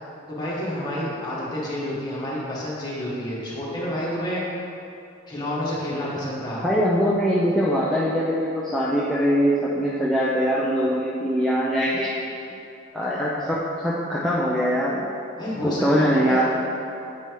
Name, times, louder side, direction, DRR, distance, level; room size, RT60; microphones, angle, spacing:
voice 1, 0.3-4.4 5.3-6.6 15.4-16.4, left 1 dB, 20° left, -8 dB, 1.6 m, -29 dB
voice 2, 6.6-12.4 12.9-15.0 15.6-16.4, equal, ahead, -8 dB, 0.5 m, -22 dB
8.2 x 4.4 x 4.7 m, 2.7 s
head